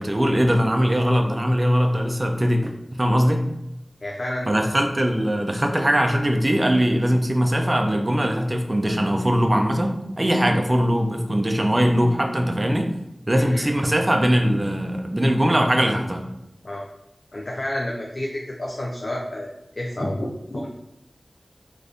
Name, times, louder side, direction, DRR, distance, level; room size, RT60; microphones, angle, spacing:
voice 1, 0.0-3.5 4.5-12.9 13.3-16.2, equal, 30° right, 4 dB, 0.4 m, -21 dB
voice 2, 4.0-4.7 13.3-13.7 16.6-16.9 17.3-20.7, left 1 dB, 50° left, -1 dB, 0.4 m, -30 dB
2.5 x 2.5 x 3.4 m, 0.85 s
wide cardioid pair, 75°, 0 cm